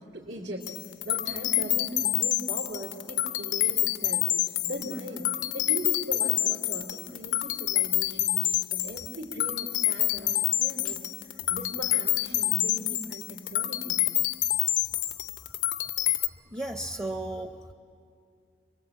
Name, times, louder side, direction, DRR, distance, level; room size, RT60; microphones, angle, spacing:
voice 1, 0.1-0.8 1.0-14.0, equal, 75° right, -3 dB, 2.9 m, -39 dB
sound 1, 0.6-16.3, left 14 dB, 80° left, 0.7 m, -27 dB
voice 2, 16.5-17.7, right 1 dB, 20° right, 6 dB, 0.8 m, -34 dB
28.5 x 23.0 x 8.4 m, 2.4 s
head